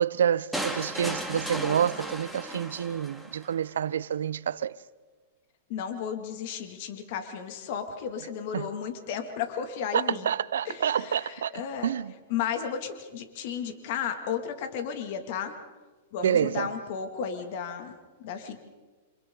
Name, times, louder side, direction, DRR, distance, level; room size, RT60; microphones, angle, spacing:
voice 1, 0.0-4.8 8.5-8.7 9.9-11.5 11.8-12.1 16.2-16.7, right 8 dB, 90° right, 0.7 m, -27 dB
sound 1, 0.5-3.5, right 1 dB, ahead, 2.1 m, -35 dB
voice 2, 5.7-10.3 10.6-11.9 12.3-15.6 16.1-18.6, left 8 dB, 55° left, 2.4 m, -34 dB
28.0 x 26.5 x 4.0 m
hypercardioid pair, 140°, 0 cm